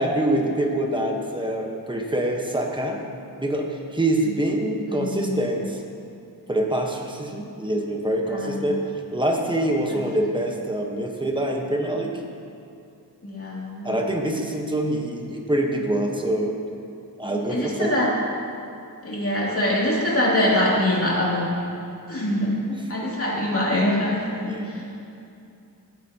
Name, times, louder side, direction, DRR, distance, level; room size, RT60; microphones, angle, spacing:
voice 1, 0.0-3.1 3.4-5.8 6.5-12.2 13.8-16.6 17.2-17.9 22.7-22.8 24.4-24.8, right 1 dB, 15° right, 1 dB, 1.2 m, -25 dB
voice 2, 4.9-5.5 8.3-8.7 9.9-10.0 13.2-14.0 17.3-18.1 19.0-21.7 22.1-22.5 22.9-24.8, left 1 dB, 35° left, -5 dB, 2.7 m, -24 dB
16.5 x 8.3 x 2.9 m, 2.6 s
wide cardioid pair, 100°, 37 cm